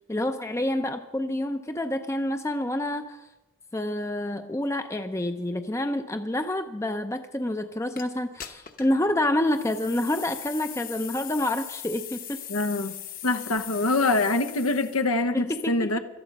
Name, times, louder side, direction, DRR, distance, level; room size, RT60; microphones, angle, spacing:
voice 1, 0.1-3.2 3.7-12.4 15.3-16.0, left 1 dB, 15° left, 8 dB, 0.5 m, -28 dB
sound 1, 8.0-8.1 8.4-9.0 9.5-15.1, left 10 dB, 40° left, 1.0 m, -40 dB
voice 2, 12.5-12.9 13.2-16.0, left 2 dB, 85° left, 9 dB, 0.9 m, -24 dB
17.5 x 13.0 x 5.2 m, 1.1 s
head